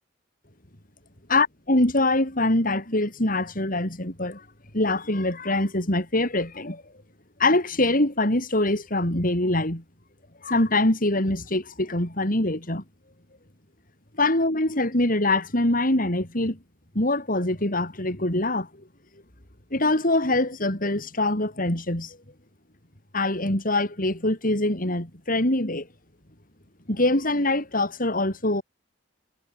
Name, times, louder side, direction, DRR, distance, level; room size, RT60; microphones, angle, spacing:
voice 1, 1.3-4.4 4.7-6.8 7.4-9.8 10.4-12.8 14.2-16.6 16.9-18.7 19.7-22.2 23.1-25.9 26.9-28.6, left 2 dB, 50° left, 6.1 m, -24 dB
head